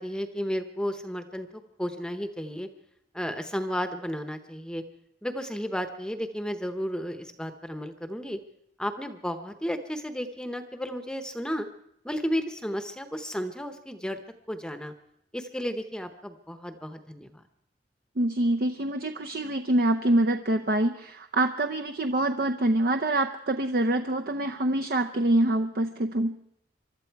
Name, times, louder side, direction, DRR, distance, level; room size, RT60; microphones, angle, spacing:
voice 1, 0.0-2.7 3.1-4.8 5.2-8.4 8.8-11.7 12.0-14.2 14.5-14.9 15.3-17.4, equal, 5° left, 8 dB, 0.8 m, -33 dB
voice 2, 18.2-26.4, right 1 dB, 55° right, 5 dB, 0.7 m, -25 dB
24.0 x 12.5 x 4.6 m, 0.75 s
head